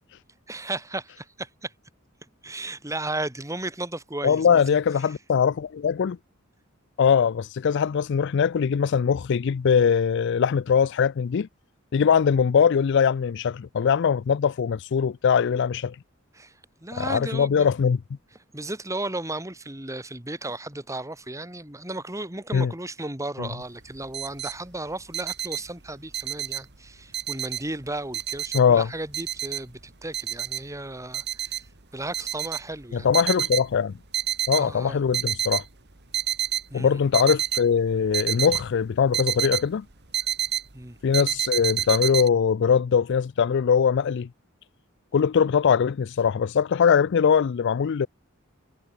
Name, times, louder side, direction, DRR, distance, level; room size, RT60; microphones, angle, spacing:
voice 1, 0.5-1.7 2.4-4.8 16.3-16.5 16.8-17.7 18.5-31.6 31.9-33.1 34.5-35.0 36.7-37.0 40.7-41.0, right 2 dB, 15° right, 3.0 m, -34 dB
voice 2, 4.2-6.2 7.0-11.5 11.9-16.0 16.9-18.0 22.5-22.7 23.4-23.5 28.5-28.9 32.9-33.9 34.5-35.6 36.7-39.8 41.0-44.3 45.1-48.1, left 7 dB, 60° left, 0.4 m, -21 dB
sound 1, 23.6-23.7 23.9-24.6 24.9-26.8 27.1-27.9 28.1-29.8 30.1-30.7 31.1-31.7 32.1-33.7 34.0-34.7 35.0-35.7 36.0-36.6 37.1-39.6 39.9-40.7 41.1-42.3, right 11 dB, 55° right, 2.3 m, -28 dB
head